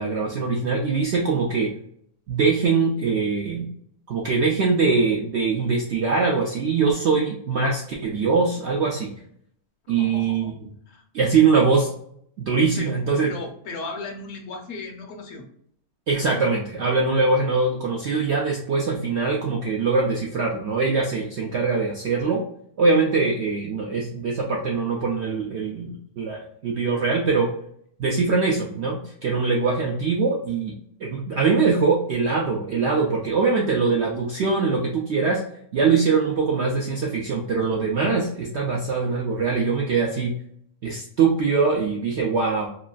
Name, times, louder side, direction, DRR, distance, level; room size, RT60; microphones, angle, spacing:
voice 1, 0.0-1.7 2.3-3.7 4.1-9.1 9.9-10.5 11.1-11.9 12.4-13.3 16.1-22.4 22.8-27.5 28.0-30.7 31.0-35.4 35.7-40.3 40.8-42.7, right 4 dB, 70° right, -2 dB, 0.6 m, -22 dB
voice 2, 10.0-10.5 10.9-11.0 12.8-12.9 13.2-15.4, left 3 dB, 65° left, 3 dB, 0.9 m, -36 dB
2.9 x 2.4 x 2.2 m, 0.67 s
omnidirectional pair, 1.6 m